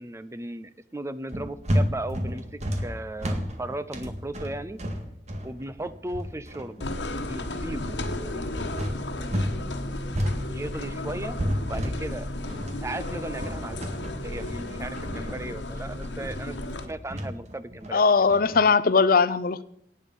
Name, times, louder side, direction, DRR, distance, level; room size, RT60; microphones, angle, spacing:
voice 1, 0.0-4.8 5.4-6.9 7.2-8.5 10.5-11.4 11.7-13.8 14.2-16.6 16.9-18.0, right 1 dB, 15° right, 14 dB, 0.6 m, -36 dB
sound 1, 1.3-9.6 9.8-18.6, equal, 40° right, 2.0 m, -31 dB
sound 2, 6.8-16.9, left 1 dB, 85° left, 1.4 m, -34 dB
voice 2, 17.9-19.6, left 5 dB, 55° left, 16 dB, 0.6 m, -20 dB
18.0 x 8.6 x 5.5 m, 0.78 s
head